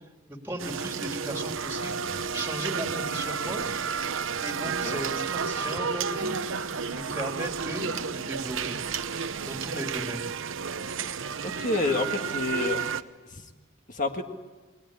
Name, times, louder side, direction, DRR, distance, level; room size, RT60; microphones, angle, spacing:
voice 1, 0.3-3.6 4.4-6.4 6.8-8.8 9.5-10.3, right 1 dB, 10° right, 3 dB, 2.5 m, -36 dB
sound 1, 0.6-13.0, right 6 dB, 75° right, 0.9 m, -31 dB
voice 2, 11.4-12.8 13.9-14.2, left 2 dB, 40° left, 4 dB, 1.7 m, -28 dB
29.0 x 21.5 x 8.7 m, 1.4 s
head